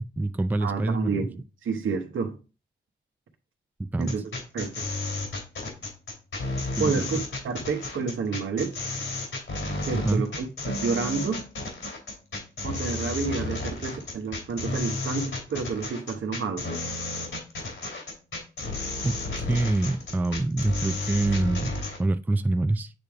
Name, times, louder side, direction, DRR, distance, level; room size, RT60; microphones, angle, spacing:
voice 1, 0.0-1.2 3.8-4.2 6.8-7.0 10.1-10.3 19.0-22.9, right 2 dB, 10° right, 0.4 m, -26 dB
voice 2, 0.6-2.4 4.0-4.2 4.5-4.9 6.8-7.2 7.4-8.7 9.9-11.5 12.6-16.7, right 5 dB, 70° right, 1.0 m, -29 dB
sound 1, 4.0-22.0, left 2 dB, 70° left, 2.8 m, -32 dB
8.2 x 3.4 x 3.4 m
cardioid pair, 55°, 21 cm